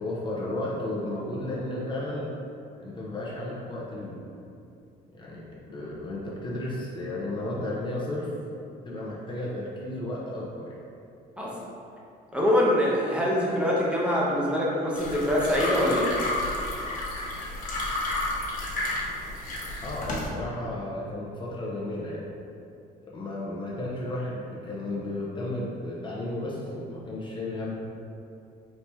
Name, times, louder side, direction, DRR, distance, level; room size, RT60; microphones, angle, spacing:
voice 1, 0.0-2.3 2.8-4.2 5.1-8.3 8.8-10.8 19.8-22.2 23.1-27.7, left 1 dB, 30° left, -5 dB, 0.7 m, -33 dB
voice 2, 12.3-16.2, left 1 dB, 5° right, -6 dB, 0.8 m, -24 dB
sound 1, 14.9-20.3, left 2 dB, 50° left, 1.1 m, -31 dB
4.3 x 2.9 x 3.4 m, 2.6 s
cardioid pair, 110°, 17 cm